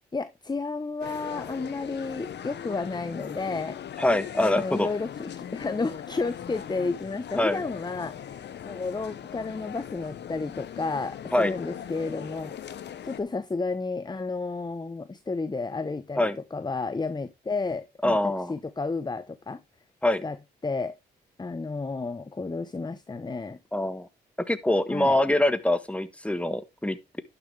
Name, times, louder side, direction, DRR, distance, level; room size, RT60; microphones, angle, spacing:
voice 1, 0.1-3.8 4.4-8.4 8.6-12.6 13.0-18.2 18.5-19.6 20.2-20.4 20.6-21.0 21.4-23.6 24.9-25.2, left 3 dB, 20° left, 0.9 m, -32 dB
sound 1, 1.0-13.2, left 9 dB, 65° left, 1.2 m, -40 dB
voice 2, 4.0-4.9 7.4-7.6 11.3-11.5 16.2-16.4 18.0-18.5 20.0-20.2 23.7-24.1 24.5-27.2, left 1 dB, 5° left, 1.5 m, -24 dB
11.5 x 6.9 x 3.4 m
supercardioid pair, 50°, 19 cm